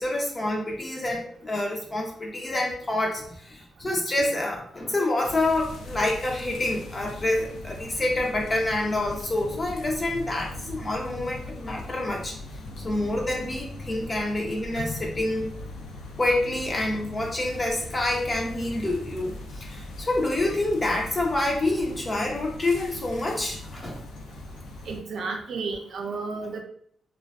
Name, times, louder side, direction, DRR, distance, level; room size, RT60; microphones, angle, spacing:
voice 1, 0.0-12.4 12.8-15.5 16.2-24.0, left 1 dB, 25° left, 0 dB, 0.4 m, -27 dB
sound 1, 5.2-25.0, left 2 dB, 85° left, 0.3 m, -40 dB
voice 2, 24.9-26.6, right 4 dB, 65° right, 2 dB, 0.5 m, -32 dB
2.4 x 2.2 x 2.3 m, 0.63 s
cardioid pair, 95°, 0 cm